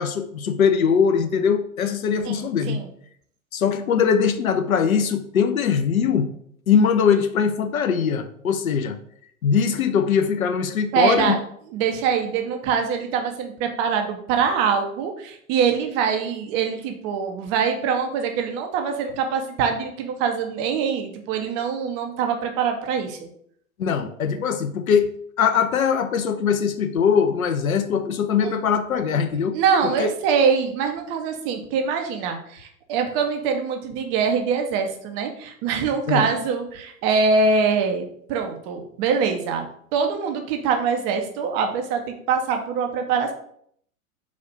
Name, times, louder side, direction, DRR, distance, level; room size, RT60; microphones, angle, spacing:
voice 1, 0.0-2.8 3.5-6.3 6.7-9.0 9.4-11.4 23.8-25.1 25.4-29.6 30.0-30.1 36.1-36.3, left 6 dB, 75° left, 8 dB, 0.7 m, -21 dB
voice 2, 2.2-2.9 10.9-11.4 11.7-23.3 28.4-28.6 29.5-43.3, right 6 dB, 20° right, 4 dB, 0.4 m, -24 dB
4.1 x 2.4 x 4.2 m, 0.65 s
figure-of-eight pair, 105°, 42 cm